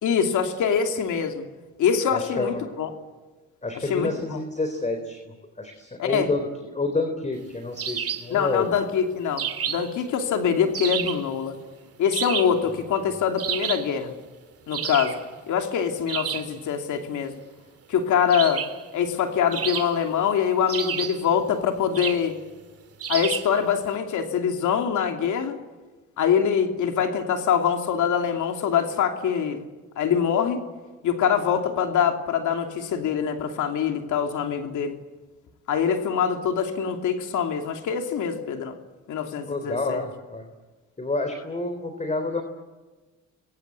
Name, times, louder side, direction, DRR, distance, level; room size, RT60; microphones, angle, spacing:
voice 1, 0.0-1.4 1.8-2.9 3.8-4.4 6.0-6.3 8.3-11.6 12.0-14.1 14.7-15.2 15.5-17.4 17.9-18.6 18.9-22.4 23.1-25.6 26.2-29.6 30.0-30.6 31.0-35.0 35.7-38.7 39.1-40.0, left 7 dB, 75° left, 5 dB, 2.9 m, -24 dB
voice 2, 2.1-2.7 3.6-6.5 6.7-8.7 39.5-40.5 41.0-42.4, left 2 dB, 25° left, 6 dB, 3.8 m, -29 dB
sound 1, 7.8-8.3 9.4-10.0 10.7-11.3 12.1-12.6 13.4-13.9 14.7-15.2 16.1-16.5 18.3-18.8 19.5-20.2 20.7-21.3 21.9-22.3 23.0-23.6, right 8 dB, 50° right, 2.6 m, -30 dB
29.0 x 23.5 x 8.4 m, 1.3 s
cardioid pair, 90°, 30 cm